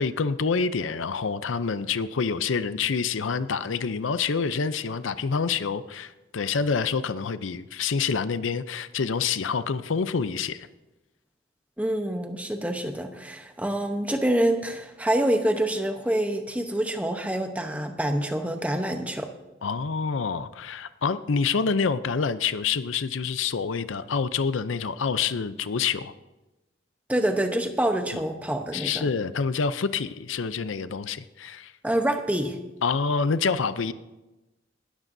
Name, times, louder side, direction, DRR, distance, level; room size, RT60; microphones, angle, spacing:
voice 1, 0.0-10.7 19.6-26.1 28.1-28.2 28.7-31.7 32.8-33.9, left 5 dB, 85° left, 13 dB, 0.6 m, -27 dB
voice 2, 11.8-19.3 27.1-29.1 31.8-32.6, right 1 dB, 5° right, 5 dB, 0.9 m, -26 dB
19.0 x 13.5 x 2.7 m, 1.1 s
head